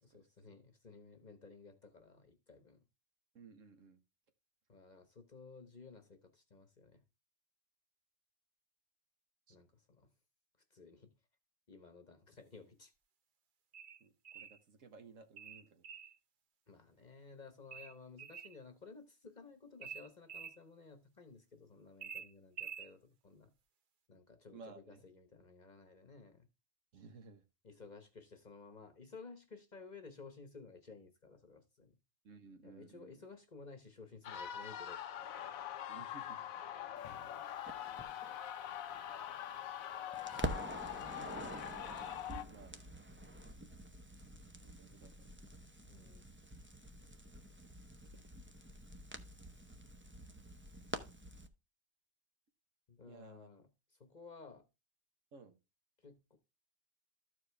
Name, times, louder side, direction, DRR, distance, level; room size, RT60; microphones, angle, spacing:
voice 1, 0.0-2.8 4.7-7.0 9.5-10.1 10.7-11.1 11.7-12.9 16.7-23.5 24.1-26.5 27.6-32.0 32.6-35.1 40.3-41.5 45.9-46.2 52.9-54.6 56.0-56.4, left 4 dB, 35° left, 1.0 m, -55 dB
voice 2, 3.3-4.0 9.5-9.6 14.0-15.8 24.5-25.0 26.9-27.4 32.2-33.2 35.9-36.4 42.5-42.9 44.6-45.4 53.1-53.5 55.3-55.6, right 4 dB, 70° right, 1.5 m, -57 dB
sound 1, 13.7-14.6 15.4-16.2 17.7-18.6 19.8-20.6 22.0-22.9, right 7 dB, 50° right, 0.7 m, -48 dB
sound 2, 34.2-42.4, left 10 dB, 85° left, 1.1 m, -44 dB
Crackle, 37.7-39.8 40.1-51.5, right 1 dB, 15° right, 0.4 m, -47 dB
13.0 x 4.8 x 3.3 m
omnidirectional pair, 1.4 m